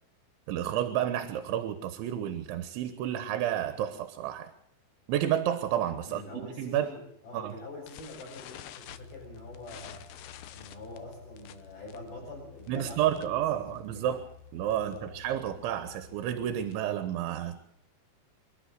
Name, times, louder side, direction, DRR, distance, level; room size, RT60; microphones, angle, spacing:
voice 1, 0.5-4.5 5.1-6.9 7.3-7.6 12.7-14.2 14.5-17.6, right 11 dB, 85° right, 10 dB, 3.5 m, -30 dB
voice 2, 6.0-10.0 10.5-14.2 14.7-15.1, left 2 dB, 55° left, -4 dB, 8.1 m, -45 dB
sound 1, 7.9-13.5 13.8-14.0 14.3-14.4 14.7-15.0 15.5-17.0, left 11 dB, 75° left, 2.3 m, -49 dB
sound 2, 8.8-16.6, left 6 dB, 20° left, 7.4 m, -53 dB
27.0 x 12.0 x 7.8 m, 0.73 s
omnidirectional pair, 5.3 m